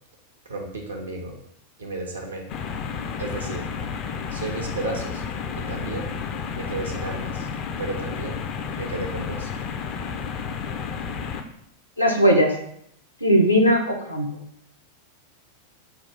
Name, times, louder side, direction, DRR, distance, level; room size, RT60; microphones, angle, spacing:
voice 1, 0.4-1.4 1.8-2.5 3.2-3.7 4.3-5.2 5.6-6.1 6.5-7.5 7.8-8.4 8.8-9.5, right 2 dB, 70° right, 1 dB, 0.8 m, -33 dB
sound 1, 2.5-11.4, left 6 dB, 35° left, 0.4 m, -31 dB
voice 2, 12.0-12.5 13.2-14.3, equal, 90° left, 1 dB, 0.7 m, -18 dB
5.7 x 2.3 x 3.4 m, 0.72 s
figure-of-eight pair, 90°, 0 cm